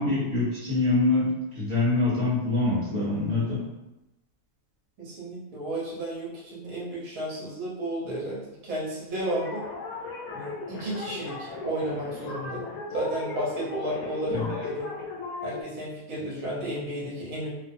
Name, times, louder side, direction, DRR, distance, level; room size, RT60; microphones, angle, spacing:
voice 1, 0.0-3.6 14.3-14.5, left 2 dB, 25° right, -11 dB, 1.0 m, -25 dB
voice 2, 5.0-9.6 10.3-12.6 12.9-14.9 15.4-17.5, right 1 dB, 75° right, -5 dB, 1.2 m, -32 dB
sound 1, 9.2-15.6, left 3 dB, 80° left, 1.0 m, -37 dB
2.5 x 2.4 x 2.6 m, 0.97 s
omnidirectional pair, 1.5 m